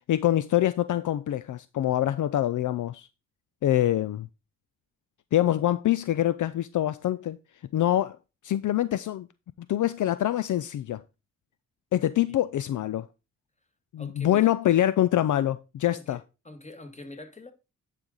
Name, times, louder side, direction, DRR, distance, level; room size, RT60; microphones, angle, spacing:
voice 1, 0.1-3.1 3.6-4.3 5.3-7.4 7.7-8.2 8.4-9.3 9.7-11.0 11.9-13.1 13.9-16.2, left 12 dB, 70° left, 0.4 m, -25 dB
voice 2, 14.0-14.8 15.9-16.2 16.4-17.5, left 2 dB, 20° left, 1.8 m, -45 dB
9.9 x 5.0 x 3.9 m
cardioid pair, 60°, 32 cm